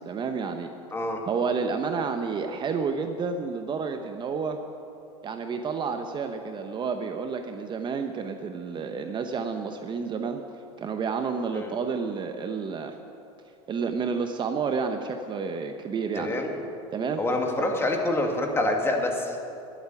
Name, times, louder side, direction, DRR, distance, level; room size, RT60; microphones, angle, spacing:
voice 1, 0.0-0.7 1.3-4.6 5.2-10.4 10.8-13.0 13.7-16.4 16.9-17.2, right 5 dB, 30° right, 6 dB, 0.9 m, -30 dB
voice 2, 16.2-16.6 17.2-19.4, left 2 dB, 15° left, 2 dB, 2.2 m, -26 dB
12.0 x 8.4 x 9.8 m, 2.7 s
hypercardioid pair, 100°, 15 cm